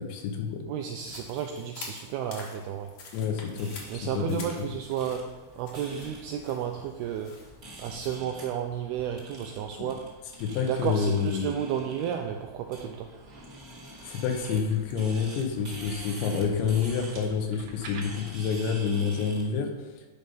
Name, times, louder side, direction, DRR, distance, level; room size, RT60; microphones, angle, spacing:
voice 1, 0.0-0.7 3.1-3.7 4.1-4.4 9.8-9.9 10.4-11.5 14.0-19.7, left 6 dB, 90° left, 3 dB, 3.5 m, -28 dB
voice 2, 0.7-2.9 3.9-7.4 7.8-10.0 10.5-13.1, right 9 dB, 85° right, 4 dB, 2.2 m, -32 dB
sound 1, 1.0-8.2, left 4 dB, 60° left, 2.3 m, -48 dB
sound 2, 3.6-19.5, right 1 dB, 30° right, 1.3 m, -46 dB
sound 3, 7.1-7.4 7.7-8.3 9.1-9.4 10.2-10.5 11.3-11.8 12.3-12.8 13.4-16.1 16.8-18.0, right 4 dB, 65° right, 2.7 m, -50 dB
10.0 x 5.3 x 5.6 m, 1.2 s
omnidirectional pair, 5.1 m